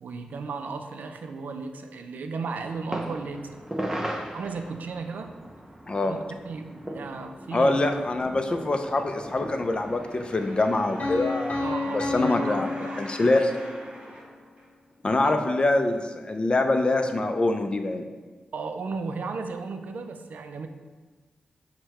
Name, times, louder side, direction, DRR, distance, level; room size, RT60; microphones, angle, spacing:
voice 1, 0.0-3.6 4.0-5.3 6.0-6.2 6.5-7.8 11.6-13.1 15.2-15.5 18.5-20.7, right 4 dB, 75° right, 6 dB, 0.3 m, -35 dB
sound 1, 2.6-10.8, right 1 dB, 15° right, 0.5 m, -38 dB
voice 2, 7.5-11.6 11.9-12.7 13.0-13.5 15.0-18.0, left 2 dB, 35° left, 6 dB, 0.4 m, -24 dB
sound 2, 9.1-15.1 15.7-15.8, equal, 40° right, 0.9 m, -45 dB
Piano, 11.0-13.8, left 3 dB, 55° left, 0.8 m, -31 dB
6.3 x 2.2 x 2.9 m, 1.3 s
cardioid pair, 75°, 3 cm